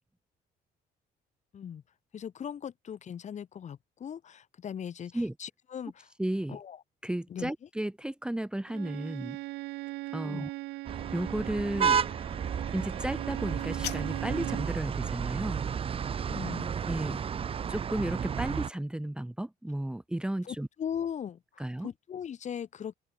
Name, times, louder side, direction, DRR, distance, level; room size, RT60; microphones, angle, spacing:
voice 1, 2.1-6.1 6.5-6.8 7.3-7.5 10.2-10.5 16.3-16.7 20.4-23.0, left 8 dB, 45° left, 2.1 m, -39 dB
voice 2, 6.2-6.6 7.0-9.4 10.1-10.5 11.1-12.0 12.7-15.6 16.9-17.2 17.7-20.7 21.6-21.9, right 1 dB, 5° right, 1.1 m, -33 dB
Bowed string instrument, 8.7-14.8, right 20 dB, 85° right, 0.9 m, -40 dB
sound 1, 10.8-18.7, right 7 dB, 35° right, 0.7 m, -32 dB
sound 2, 13.4-14.4, left 16 dB, 75° left, 3.1 m, -41 dB
open air
cardioid pair, 110°, 17 cm